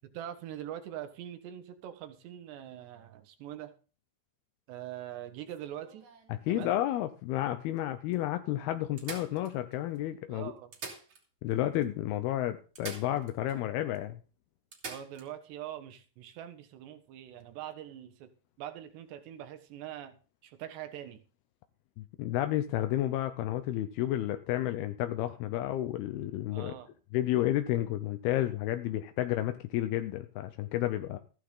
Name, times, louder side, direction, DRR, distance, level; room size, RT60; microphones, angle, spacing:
voice 1, 0.1-3.7 4.7-6.1 6.5-6.7 10.3-10.7 14.8-18.3 18.6-20.2 20.4-21.2 26.5-26.9, right 11 dB, 70° right, 8 dB, 3.4 m, -43 dB
sound 1, 5.5-7.1 7.8-7.9 8.1-8.2 9.0-10.0 10.6-11.6 11.8-11.9 12.8-13.6 13.9-14.0 14.7-15.3 17.3-17.4, right 4 dB, 35° right, 3.3 m, -46 dB
voice 2, 6.3-10.5 11.4-14.2 22.0-26.7 27.1-31.2, left 13 dB, 80° left, 8 dB, 2.3 m, -31 dB
15.0 x 11.0 x 3.8 m, 0.36 s
omnidirectional pair, 5.4 m